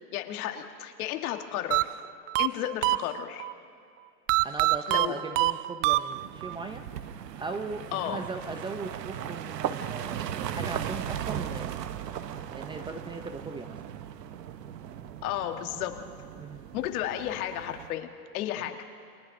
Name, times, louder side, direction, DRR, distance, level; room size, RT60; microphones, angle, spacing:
voice 1, 0.1-1.9 2.4-3.5 4.9-5.2 7.9-8.3 15.2-16.1 16.7-18.8, left 12 dB, 60° left, 5 dB, 1.7 m, -33 dB
sound 1, 1.7-3.5 4.3-6.6, right 17 dB, 55° right, 0.5 m, -26 dB
voice 2, 4.4-6.8 7.4-11.8 12.5-13.8 16.4-16.6 18.6-18.7, right 3 dB, 10° right, 6 dB, 0.6 m, -38 dB
sound 2, 6.1-17.9, right 9 dB, 85° right, 1.1 m, -37 dB
29.5 x 25.0 x 3.8 m, 2.5 s
hypercardioid pair, 130°, 48 cm